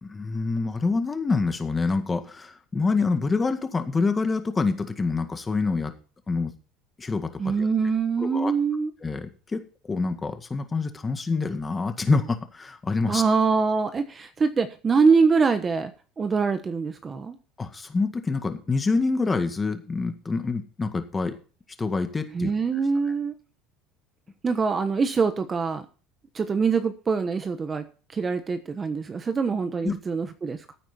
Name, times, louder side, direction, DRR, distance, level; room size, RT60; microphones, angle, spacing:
voice 1, 0.0-5.9 6.3-6.5 7.0-7.7 8.2-8.5 9.0-9.6 9.9-13.2 17.6-21.3 21.8-22.5 29.8-29.9, left 4 dB, 15° left, 7 dB, 1.9 m, -26 dB
voice 2, 7.4-8.9 13.1-15.9 16.2-17.4 22.3-23.3 24.4-25.8 26.3-30.6, right 5 dB, 20° right, 9 dB, 1.1 m, -24 dB
15.0 x 8.9 x 4.3 m, 0.37 s
cardioid pair, 145°, 0 cm